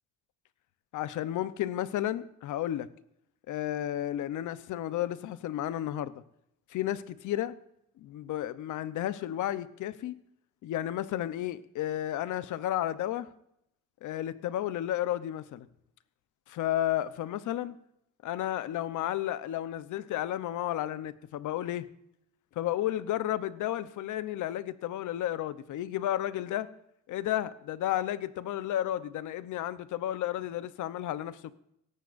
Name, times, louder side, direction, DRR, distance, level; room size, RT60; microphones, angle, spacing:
voice 1, 0.9-2.9 3.5-6.1 6.7-7.5 8.0-10.1 10.6-13.3 14.0-15.7 16.5-17.8 18.2-21.9 22.6-26.7 27.1-31.5, left 12 dB, 80° left, 0.8 m, -32 dB
17.5 x 14.5 x 2.6 m
cardioid pair, 90°, 30 cm